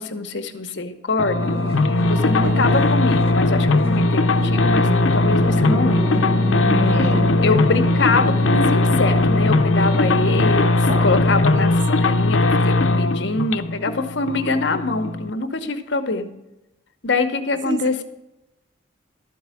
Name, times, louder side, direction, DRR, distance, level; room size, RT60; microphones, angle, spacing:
voice 1, 0.0-6.1 6.7-16.3 17.0-18.0, left 3 dB, 65° left, 8 dB, 0.9 m, -24 dB
sound 1, 1.2-15.3, left 2 dB, 90° left, 0.6 m, -19 dB
sound 2, 1.4-11.2, equal, 30° right, 0.8 m, -29 dB
voice 2, 2.4-2.9 6.9-7.4 11.5-11.7 12.0-12.2 17.6-18.0, right 3 dB, 60° right, 11 dB, 0.8 m, -30 dB
sound 3, 5.7-8.2, left 2 dB, 5° right, 0.5 m, -37 dB
12.5 x 4.7 x 8.4 m, 0.95 s
head